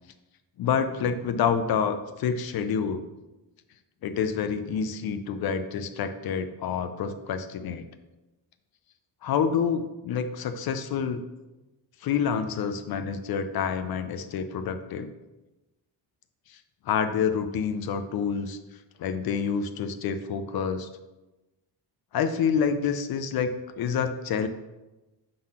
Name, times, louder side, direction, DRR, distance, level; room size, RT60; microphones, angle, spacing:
voice 1, 0.6-3.1 4.0-7.9 9.2-11.2 12.0-15.1 16.5-16.6 16.9-18.6 19.0-20.9 22.1-24.5, left 7 dB, 60° left, 9 dB, 0.6 m, -28 dB
7.6 x 3.9 x 5.7 m, 1.1 s
cardioid pair, 180°, 41 cm